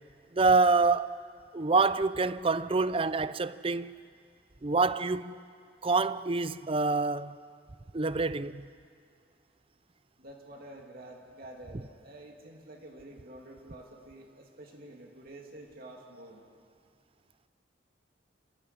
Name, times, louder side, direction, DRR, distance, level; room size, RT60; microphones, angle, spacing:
voice 1, 0.3-1.2 1.5-3.9 4.6-5.4 5.8-7.4 7.9-8.6, right 3 dB, 30° right, 0.6 m, -26 dB
voice 2, 10.2-16.4, right 1 dB, 50° right, 2.8 m, -49 dB
29.0 x 16.5 x 9.9 m
head